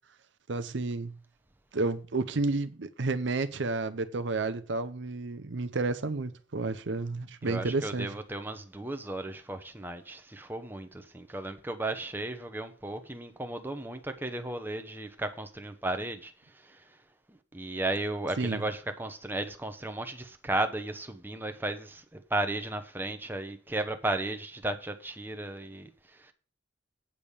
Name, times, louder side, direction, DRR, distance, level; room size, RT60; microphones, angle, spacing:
voice 1, 0.5-1.2 1.7-8.1 18.4-18.6, right 3 dB, 70° right, 0.7 m, -31 dB
voice 2, 7.4-16.3 16.6-16.8 17.3-26.3, right 2 dB, 10° right, 0.9 m, -35 dB
8.4 x 5.3 x 7.0 m
head